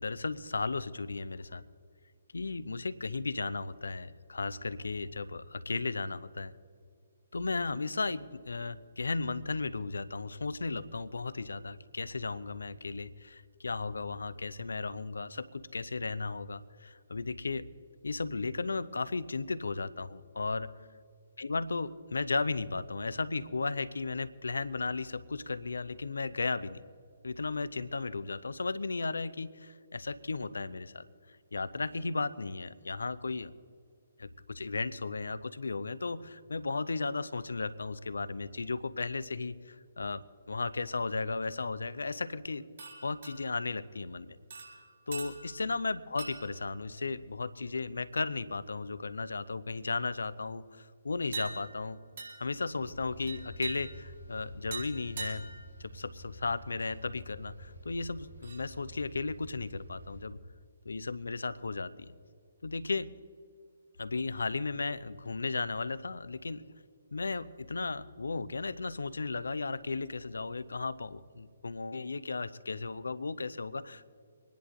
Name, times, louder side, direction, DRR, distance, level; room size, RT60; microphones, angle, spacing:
voice 1, 0.0-1.6 2.3-6.5 7.3-17.7 18.0-20.7 21.4-26.8 27.2-31.1 31.5-33.5 34.2-42.6 43.0-44.4 44.8-52.0 52.4-55.5 55.8-60.4 60.8-62.1 62.6-63.1 64.0-66.6 67.1-74.1, left 3 dB, 70° left, 15 dB, 0.6 m, -35 dB
sound 1, 42.8-43.7 44.5-45.7 46.2-46.7 47.3-47.5 51.3-51.8 52.2-52.6 53.3-54.1 54.7-55.7 56.8-56.9 58.4-58.7, right 4 dB, 60° right, 4.4 m, -43 dB
sound 2, 52.7-60.3, equal, 90° right, 3.1 m, -50 dB
25.0 x 10.5 x 3.8 m, 2.2 s
figure-of-eight pair, 135°, 0 cm